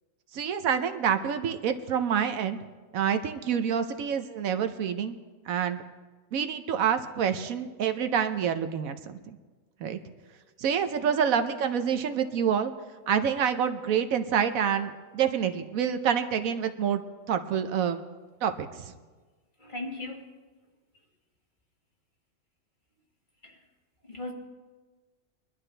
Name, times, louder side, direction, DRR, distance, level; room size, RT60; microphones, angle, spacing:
voice 1, 0.3-2.6 2.9-5.2 5.5-5.8 6.3-9.4 9.8-10.0 10.6-12.7 13.1-17.0 17.3-18.0 18.4-18.9, right 8 dB, 75° right, 8 dB, 1.1 m, -27 dB
voice 2, 10.9-11.3 18.6-18.7 19.6-20.3 23.4-23.7 24.0-24.3, left 2 dB, 35° left, 0 dB, 1.8 m, -39 dB
22.5 x 11.5 x 3.3 m, 1.3 s
omnidirectional pair, 1.5 m